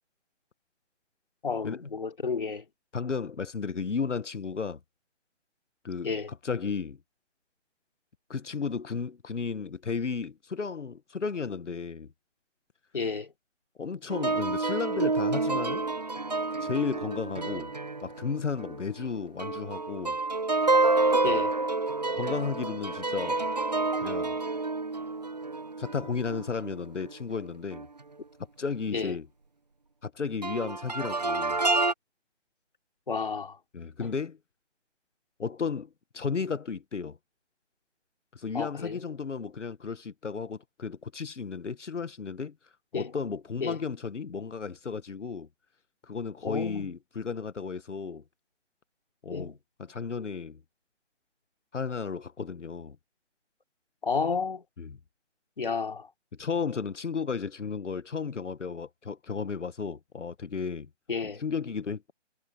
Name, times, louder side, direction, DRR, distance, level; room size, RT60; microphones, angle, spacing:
voice 1, 1.4-2.6 6.0-6.3 12.9-13.3 21.2-21.6 28.9-29.1 33.1-33.6 34.0-34.1 38.5-39.0 42.9-43.1 43.6-43.8 46.4-46.9 49.3-49.6 54.0-54.6 55.6-56.1 61.1-61.4, left 5 dB, 45° left, 3.3 m, -31 dB
voice 2, 2.9-4.8 5.8-7.0 8.3-12.1 13.8-15.8 16.6-17.7 18.0-20.2 22.1-23.4 24.0-24.4 25.8-27.9 28.6-29.3 30.0-31.6 33.7-34.4 35.4-37.2 38.3-42.5 42.9-45.5 46.0-48.2 49.2-50.6 51.7-53.0 54.8-55.0 56.4-60.9 61.4-62.1, left 5 dB, 70° left, 1.4 m, -34 dB
sound 1, 14.1-19.1 19.4-27.1 27.7-27.9 30.4-31.9, right 3 dB, 35° right, 0.8 m, -29 dB
hypercardioid pair, 175°, 37 cm